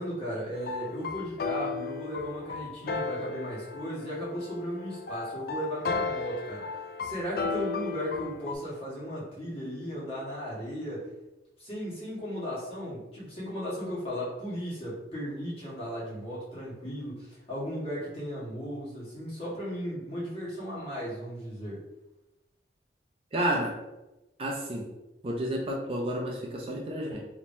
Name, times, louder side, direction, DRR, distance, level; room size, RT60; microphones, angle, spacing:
voice 1, 0.0-6.7 7.0-11.1 11.6-21.8, equal, 30° left, -8 dB, 1.4 m, -36 dB
sound 1, 0.5-8.5, left 4 dB, 55° left, 0.3 m, -35 dB
voice 2, 23.3-23.7 24.4-24.9 25.2-27.2, right 1 dB, 30° right, -1 dB, 0.4 m, -30 dB
3.5 x 2.9 x 2.6 m, 0.99 s
head